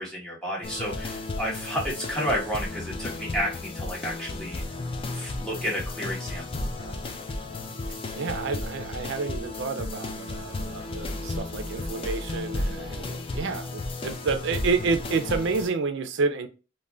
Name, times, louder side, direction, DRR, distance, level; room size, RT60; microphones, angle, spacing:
voice 1, 0.0-4.6 5.1-6.9, equal, 5° left, -5 dB, 1.1 m, -31 dB
sound 1, 0.6-15.7, left 2 dB, 25° left, 0.3 m, -34 dB
voice 2, 8.1-16.5, right 4 dB, 60° right, 8 dB, 0.4 m, -29 dB
2.5 x 2.1 x 3.2 m, 0.31 s
head